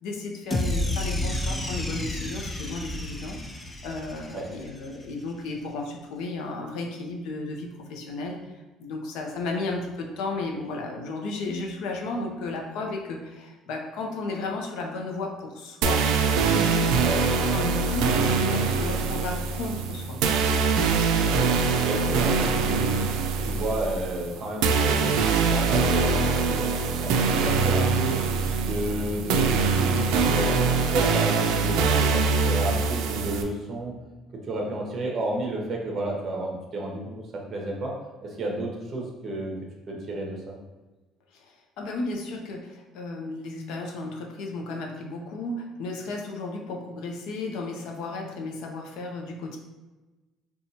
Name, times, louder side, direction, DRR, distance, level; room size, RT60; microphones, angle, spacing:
voice 1, 0.0-8.4 8.8-17.3 17.5-20.2 41.3-49.6, left 3 dB, 70° left, 1 dB, 0.6 m, -34 dB
sound 1, 0.5-4.8, left 1 dB, 10° left, 0.3 m, -30 dB
sound 2, 15.8-33.4, right 4 dB, 80° right, 0.3 m, -23 dB
voice 2, 21.1-21.5 21.8-23.0 23.4-25.2 25.5-26.7 27.0-28.1 28.6-33.9 34.5-37.9 38.2-39.5 39.9-40.5, right 1 dB, 30° right, -1 dB, 0.7 m, -31 dB
4.3 x 2.3 x 2.7 m, 1.2 s
cardioid pair, 155°, 0 cm